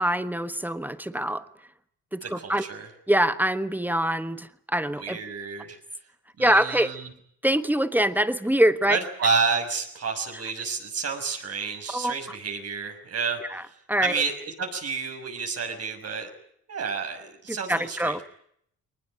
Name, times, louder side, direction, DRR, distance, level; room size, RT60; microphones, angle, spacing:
voice 1, 0.0-1.4 2.1-2.6 3.1-5.2 6.4-6.9 7.4-9.0 11.9-12.1 13.5-13.6 13.9-14.1 17.5-18.2, right 1 dB, 5° right, 12 dB, 1.3 m, -24 dB
voice 2, 2.2-2.9 5.0-5.8 6.4-7.1 8.9-16.3 16.7-18.2, right 5 dB, 55° right, 4 dB, 6.3 m, -30 dB
22.0 x 20.0 x 9.9 m, 0.69 s
cardioid pair, 90°, 30 cm